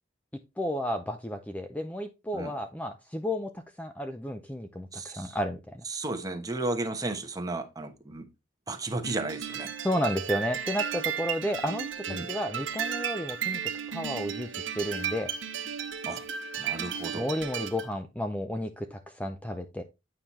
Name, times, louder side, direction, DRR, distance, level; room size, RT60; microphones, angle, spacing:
voice 1, 0.6-5.8 9.8-13.6 13.9-15.3 17.1-19.8, equal, 10° left, 0.5 m, -32 dB
voice 2, 4.9-5.4 5.9-8.3 8.7-9.7 12.1-12.3 16.0-16.2 16.6-17.3, right 2 dB, 20° right, 1.1 m, -34 dB
sound 1, 9.0-17.9, right 8 dB, 85° right, 1.1 m, -34 dB
8.9 x 5.7 x 3.1 m
head